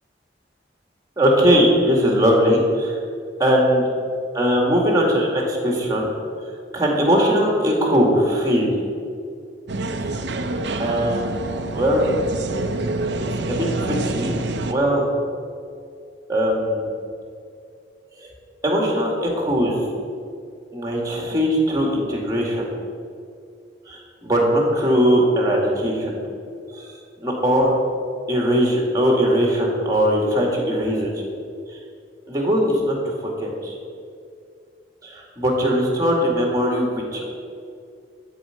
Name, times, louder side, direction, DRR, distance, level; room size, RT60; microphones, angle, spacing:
voice 1, 1.2-3.0 3.4-3.8 4.3-6.1 6.4-8.7 10.0-10.1 10.8-11.4 11.7-12.1 13.2-14.4 14.7-15.1 16.3-16.8 18.2-18.3 18.6-19.8 20.7-22.7 23.9-26.2 26.7-26.9 27.2-27.7 28.3-31.2 31.7-31.8 32.3-33.7 35.0-37.3, equal, 20° right, -1 dB, 2.2 m, -20 dB
sound 1, 9.7-14.7, right 2 dB, 75° right, 0.7 m, -27 dB
12.5 x 4.9 x 8.0 m, 2.4 s
head